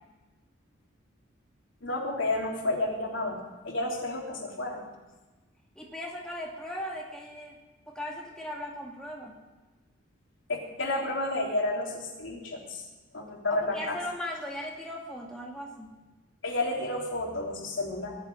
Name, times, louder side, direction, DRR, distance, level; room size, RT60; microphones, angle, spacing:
voice 1, 1.8-4.8 10.5-12.8 13.1-14.0 16.4-18.2, left 2 dB, 70° left, -1 dB, 3.4 m, -31 dB
voice 2, 5.8-7.6 7.9-9.4 13.5-15.9, left 1 dB, 5° left, -3 dB, 2.2 m, -38 dB
19.5 x 7.5 x 9.7 m, 1.2 s
head